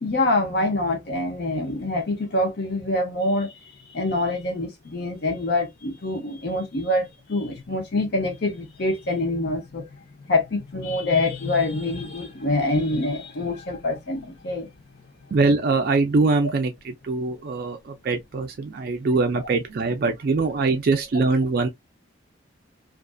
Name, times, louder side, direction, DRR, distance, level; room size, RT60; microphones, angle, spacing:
voice 1, 0.0-3.5 3.9-9.9 10.3-14.7, left 2 dB, 55° left, 0.7 m, -25 dB
voice 2, 15.3-21.7, right 3 dB, 50° right, 0.3 m, -23 dB
2.5 x 2.4 x 2.2 m
head